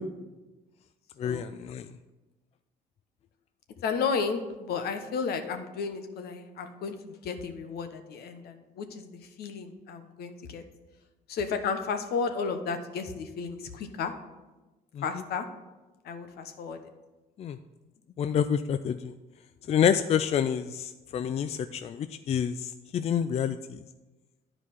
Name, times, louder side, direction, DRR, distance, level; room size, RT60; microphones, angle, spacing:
voice 1, 1.2-1.9 17.4-17.6 18.2-19.1 19.7-23.8, left 8 dB, 40° left, 10 dB, 0.3 m, -28 dB
voice 2, 3.8-10.6 11.3-14.1 15.0-15.5 16.0-16.8, left 5 dB, 70° left, 8 dB, 1.0 m, -33 dB
10.5 x 4.8 x 5.6 m, 1.1 s
cardioid pair, 110°, 17 cm